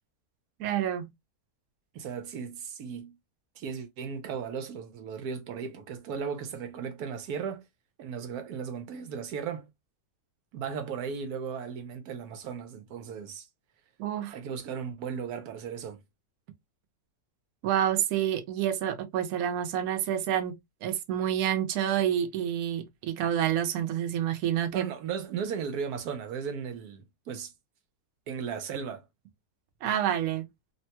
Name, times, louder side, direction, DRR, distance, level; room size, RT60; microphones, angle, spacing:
voice 1, 0.6-1.1 14.0-14.4 17.6-20.5 20.8-24.9 29.8-30.4, right 10 dB, 75° right, 1.1 m, -28 dB
voice 2, 1.9-3.1 3.6-7.6 8.0-9.7 10.5-13.5 14.3-16.0 24.7-27.5 28.3-29.0, right 6 dB, 90° right, 1.2 m, -36 dB
3.3 x 2.2 x 2.8 m
omnidirectional pair, 1.6 m